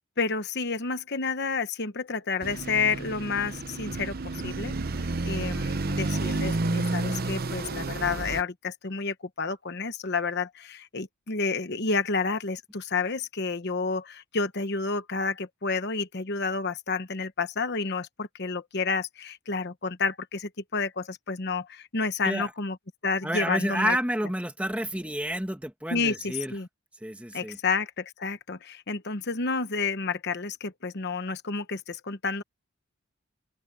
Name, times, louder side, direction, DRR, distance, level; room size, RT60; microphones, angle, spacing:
voice 1, 0.2-4.8 5.2-22.8 23.0-24.0 25.9-26.7 27.3-32.4, left 4 dB, 50° left, 1.1 m, -30 dB
sound 1, 2.4-8.4, right 2 dB, 45° right, 0.8 m, -30 dB
voice 2, 23.2-26.6 27.0-27.6, right 1 dB, 5° right, 1.7 m, -29 dB
open air
head